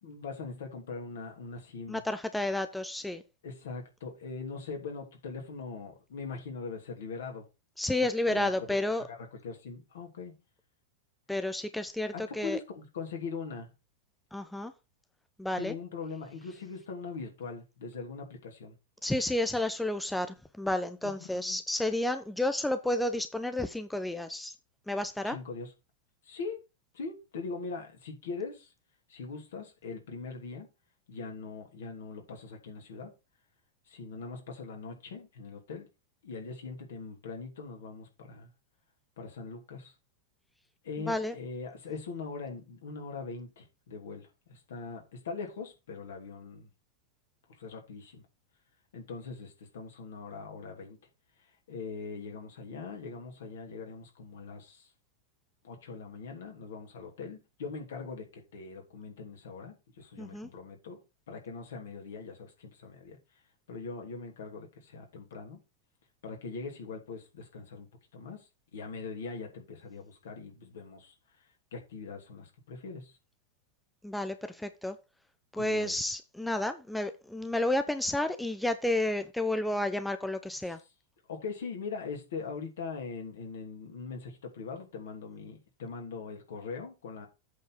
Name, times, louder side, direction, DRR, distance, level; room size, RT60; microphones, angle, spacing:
voice 1, 0.0-2.0 3.4-7.5 8.3-8.7 9.1-10.4 12.1-13.7 15.6-18.7 21.0-21.6 25.2-25.7 26.2-26.6 26.9-28.7 29.1-30.7 31.1-33.1 33.9-35.9 36.2-38.5 39.2-39.9 40.8-46.7 47.6-48.2 48.9-51.0 51.7-54.9 55.6-63.2 63.7-65.6 66.2-67.9 68.1-71.1 71.7-73.2 75.5-76.0 81.3-87.3, left 4 dB, 60° left, 3.0 m, -41 dB
voice 2, 1.9-3.2 7.8-9.0 11.3-12.6 14.3-14.7 15.4-15.7 19.0-24.5 24.9-25.4 41.1-41.3 60.2-60.5 74.0-75.0 75.5-80.8, left 1 dB, 5° left, 0.7 m, -31 dB
8.3 x 4.6 x 5.8 m
figure-of-eight pair, 90°, 0 cm